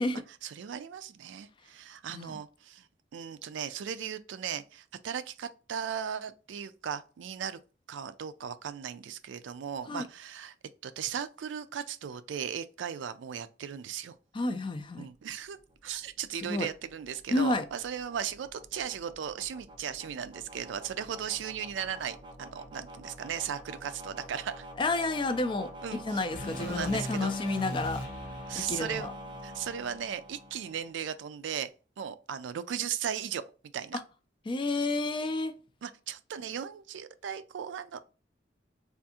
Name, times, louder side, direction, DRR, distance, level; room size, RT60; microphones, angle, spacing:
voice 1, 0.4-2.9 3.1-7.6 7.9-10.5 10.8-14.2 15.0-15.6 15.8-24.7 25.8-26.2 26.6-27.3 28.5-29.1 29.4-31.7 32.0-33.4 33.7-34.0 35.8-38.0, right 8 dB, 85° right, 0.4 m, -37 dB
voice 2, 14.3-15.1 16.4-16.7 17.3-17.6 24.8-25.7 26.0-28.0 28.5-29.1 34.5-35.5, left 2 dB, 25° left, 0.3 m, -30 dB
sound 1, 14.9-31.1, right 1 dB, 25° right, 0.5 m, -47 dB
sound 2, 26.3-30.5, left 2 dB, 65° left, 0.9 m, -41 dB
3.5 x 2.5 x 2.7 m
head